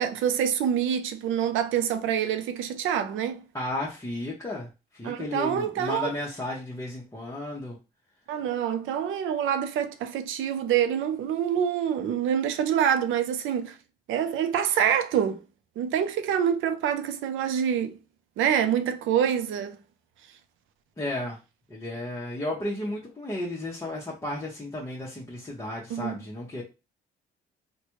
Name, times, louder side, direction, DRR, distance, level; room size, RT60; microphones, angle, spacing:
voice 1, 0.0-3.4 5.0-6.1 8.3-13.8 14.1-15.4 15.8-18.0 18.4-19.8 25.9-26.2, right 9 dB, 80° right, 0.5 m, -26 dB
voice 2, 3.5-7.8 21.0-21.4 21.7-26.6, left 1 dB, 15° left, 0.8 m, -33 dB
3.2 x 2.2 x 2.9 m
cardioid pair, 90°, 20 cm